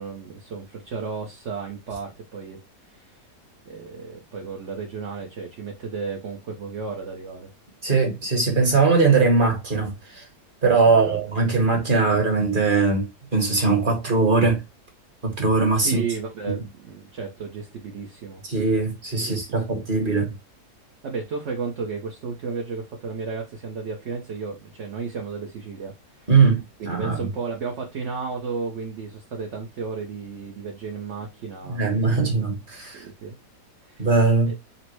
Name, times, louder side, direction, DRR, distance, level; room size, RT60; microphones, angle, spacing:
voice 1, 0.0-2.6 2.9-3.2 3.6-7.5 10.8-11.2 15.8-18.4 19.2-19.5 21.0-26.3 26.8-32.3 32.9-33.4 33.8-34.1 34.5-34.7, right 5 dB, 55° right, 0.9 m, -33 dB
voice 2, 7.8-10.2 10.6-13.0 13.3-14.6 15.2-16.0 16.5-16.6 18.4-20.3 26.3-26.6 26.8-27.3 31.7-33.0 34.0-34.5, right 4 dB, 35° right, 1.2 m, -20 dB
4.1 x 2.1 x 4.5 m
omnidirectional pair, 1.8 m